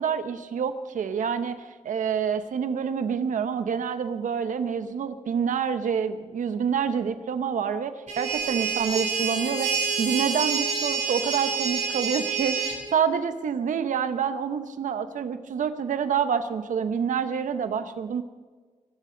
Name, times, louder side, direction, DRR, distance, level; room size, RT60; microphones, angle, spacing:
voice 1, 0.0-9.7 10.0-18.2, right 7 dB, 90° right, 10 dB, 1.0 m, -27 dB
sound 1, 8.1-12.8, right 6 dB, 70° right, 6.1 m, -27 dB
23.0 x 13.0 x 4.0 m, 1.5 s
cardioid pair, 85°, 13 cm